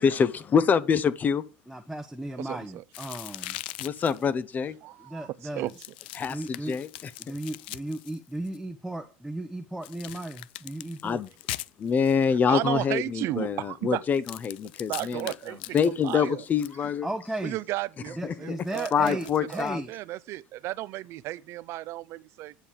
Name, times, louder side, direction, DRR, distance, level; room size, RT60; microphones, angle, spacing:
voice 1, 0.0-1.4 3.8-4.8 6.1-7.1 11.0-11.3 11.8-15.3 15.7-17.1 18.2-18.6 18.9-19.8, left 6 dB, 30° left, 0.9 m, -25 dB
voice 2, 1.7-3.6 5.1-5.7 6.2-6.8 7.2-11.2 17.0-17.6 18.2-19.9, right 1 dB, 5° right, 1.0 m, -35 dB
voice 3, 2.4-2.8 4.8-5.7 12.5-14.0 14.9-16.4 17.4-22.5, right 16 dB, 55° right, 0.7 m, -34 dB
sound 1, 2.9-4.3 5.7-8.6 9.8-12.3 14.1-16.7 18.6-19.7, left 17 dB, 85° left, 0.5 m, -41 dB
10.0 x 5.7 x 8.3 m
supercardioid pair, 110°, 5 cm